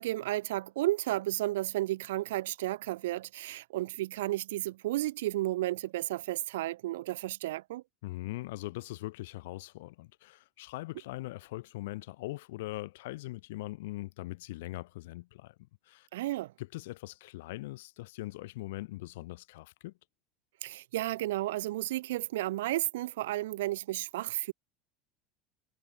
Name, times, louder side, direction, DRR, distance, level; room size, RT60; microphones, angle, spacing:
voice 1, 0.0-7.8 16.1-16.5 20.6-24.5, right 16 dB, 70° right, 2.5 m, -33 dB
voice 2, 8.0-15.5 15.9-16.1 16.6-19.9, left 19 dB, 65° left, 7.0 m, -41 dB
figure-of-eight pair, 70°, 0 cm